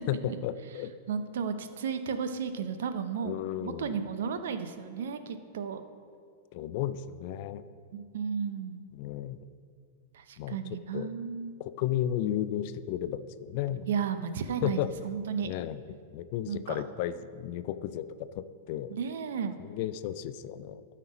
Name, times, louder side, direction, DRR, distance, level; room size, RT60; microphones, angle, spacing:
voice 1, 0.0-0.9 3.2-4.0 6.5-7.6 8.9-9.5 10.4-10.6 10.9-11.1 11.6-13.9 14.6-14.9 15.4-18.9 19.6-20.8, left 11 dB, 50° left, 13 dB, 0.4 m, -33 dB
voice 2, 1.1-5.8 7.9-8.8 10.1-11.5 13.9-15.5 16.5-16.8 18.9-19.6, right 6 dB, 70° right, 10 dB, 0.6 m, -34 dB
12.5 x 4.4 x 5.0 m, 2.2 s
hypercardioid pair, 100°, 0 cm